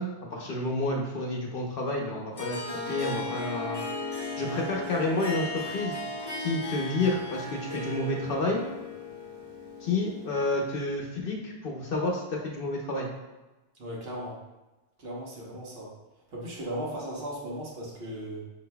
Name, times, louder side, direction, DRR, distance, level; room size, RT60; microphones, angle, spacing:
voice 1, 0.0-3.8 4.4-6.0 6.4-8.6 9.8-13.1, left 2 dB, 60° left, 0 dB, 0.9 m, -30 dB
Harp, 2.3-10.8, left 2 dB, 25° left, 0.8 m, -36 dB
voice 2, 13.8-14.4 15.0-15.9 16.3-18.4, equal, 65° right, -4 dB, 1.3 m, -37 dB
5.8 x 4.0 x 2.2 m, 1.1 s
omnidirectional pair, 1.1 m